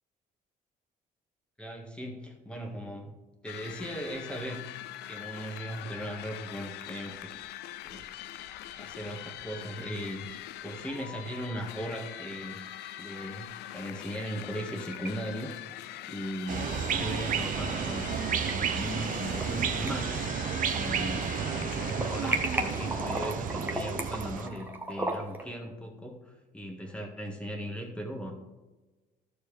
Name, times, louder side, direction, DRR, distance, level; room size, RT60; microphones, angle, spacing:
voice 1, 1.6-3.1 3.4-4.7 5.1-7.3 7.8-8.1 8.8-10.3 10.6-12.6 13.0-15.5 16.1-18.1 18.4-21.4 21.7-28.3, equal, 5° left, 0 dB, 1.7 m, -38 dB
sound 1, 3.5-23.0, left 13 dB, 80° left, 0.5 m, -43 dB
sound 2, 14.4-15.1 15.4-15.5 17.0-17.1 18.2-18.5 19.0-19.6 19.9-21.2 21.5-25.4, right 1 dB, 10° right, 1.2 m, -35 dB
sound 3, 16.5-24.5, right 7 dB, 55° right, 0.8 m, -32 dB
13.0 x 6.9 x 3.4 m, 1.2 s
cardioid pair, 110°, 17 cm